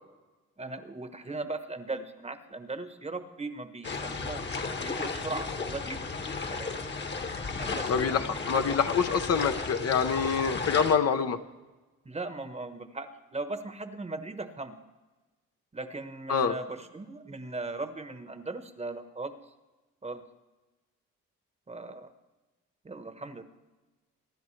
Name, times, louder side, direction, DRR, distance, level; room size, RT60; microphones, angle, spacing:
voice 1, 0.6-6.0 6.5-6.7 7.6-8.3 12.0-14.8 15.7-19.3 20.0-20.2 21.7-22.1 22.8-23.4, right 3 dB, 20° right, 9 dB, 1.1 m, -38 dB
sound 1, 3.8-11.0, left 4 dB, 35° left, 1.3 m, -34 dB
voice 2, 7.9-11.4 16.3-16.5, left 6 dB, 55° left, 7 dB, 0.9 m, -26 dB
24.0 x 10.5 x 3.3 m, 1.2 s
cardioid pair, 90°, 30 cm